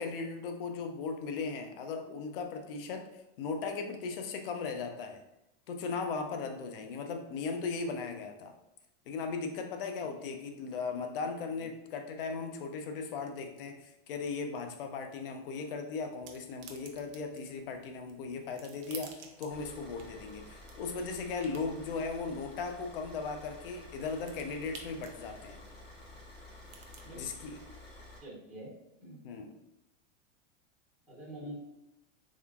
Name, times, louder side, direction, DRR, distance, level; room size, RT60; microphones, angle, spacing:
voice 1, 0.0-3.1 3.4-5.2 5.7-8.5 9.1-25.6 27.1-27.6 29.2-29.5, left 4 dB, 45° left, 5 dB, 0.5 m, -37 dB
sound 1, 16.1-27.1, right 6 dB, 50° right, 0.6 m, -54 dB
Car / Idling, 19.5-28.2, left 2 dB, 25° left, 0.9 m, -51 dB
voice 2, 28.2-28.7 29.0-29.2 31.1-31.5, right 1 dB, ahead, -10 dB, 0.5 m, -46 dB
3.6 x 3.3 x 2.3 m, 0.86 s
supercardioid pair, 175°, 39 cm